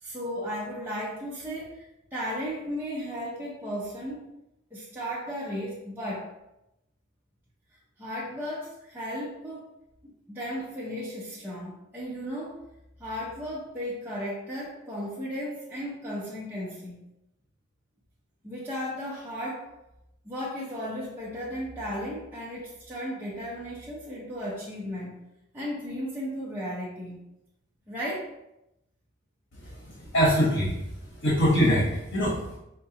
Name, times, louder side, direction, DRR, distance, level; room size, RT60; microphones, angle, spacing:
voice 1, 0.0-4.2 4.7-6.3 8.0-9.7 10.3-12.6 13.0-17.0 18.4-19.7 20.2-25.1 25.5-27.2 27.9-28.3, equal, 10° right, -8 dB, 0.5 m, -35 dB
voice 2, 29.6-30.8 31.1-32.6, equal, 90° left, -5 dB, 0.9 m, -24 dB
4.6 x 2.1 x 2.8 m, 0.88 s
head